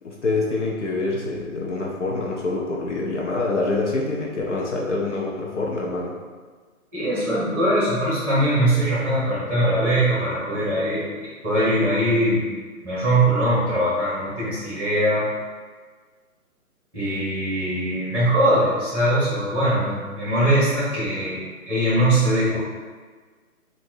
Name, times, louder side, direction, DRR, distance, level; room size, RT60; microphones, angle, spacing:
voice 1, 0.0-6.2, left 3 dB, 55° left, -2 dB, 0.7 m, -26 dB
voice 2, 6.9-11.0 11.4-12.4 12.8-15.3 16.9-21.4 21.7-22.6, right 1 dB, 5° right, -9 dB, 1.3 m, -21 dB
3.7 x 2.7 x 4.5 m, 1.5 s
figure-of-eight pair, 150°, 44 cm